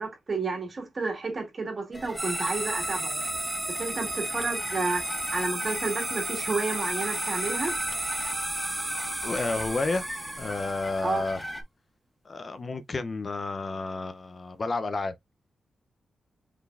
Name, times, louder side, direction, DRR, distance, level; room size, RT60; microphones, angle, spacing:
voice 1, 0.0-3.2 3.8-7.7 11.0-11.2, right 3 dB, 35° right, 2.2 m, -31 dB
sound 1, 1.9-11.6, left 1 dB, 20° left, 1.3 m, -39 dB
sound 2, 2.2-11.1, right 1 dB, 10° right, 1.5 m, -33 dB
voice 2, 9.2-10.1 10.4-11.4 12.2-15.1, left 3 dB, 35° left, 0.4 m, -31 dB
5.6 x 3.9 x 2.3 m
wide cardioid pair, 145°, 0 cm